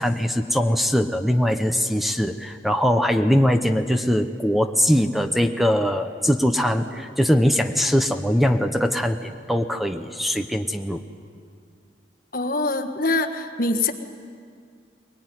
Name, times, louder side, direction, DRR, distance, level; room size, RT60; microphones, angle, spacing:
voice 1, 0.0-11.0, equal, ahead, 7 dB, 0.8 m, -21 dB
voice 2, 12.3-13.9, left 2 dB, 55° left, 7 dB, 1.5 m, -24 dB
22.5 x 21.5 x 9.6 m, 2.2 s
head